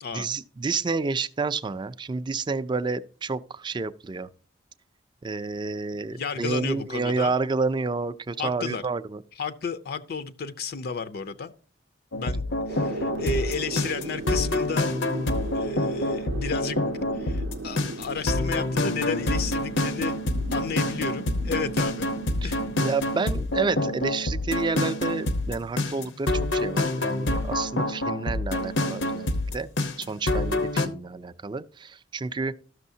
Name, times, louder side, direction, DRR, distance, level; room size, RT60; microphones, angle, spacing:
voice 1, 0.1-4.3 5.2-9.2 22.8-29.7 30.0-32.5, right 4 dB, 25° right, 0.4 m, -29 dB
voice 2, 5.9-7.3 8.4-8.8 9.4-11.5 12.1-14.9 15.5-16.8 17.1-20.2 20.5-22.1 22.4-22.6, left 5 dB, 55° left, 0.5 m, -32 dB
sound 1, 12.1-30.9, left 1 dB, 90° left, 0.9 m, -27 dB
sound 2, 12.7-22.8, right 3 dB, 75° right, 0.5 m, -37 dB
13.5 x 6.2 x 2.7 m
head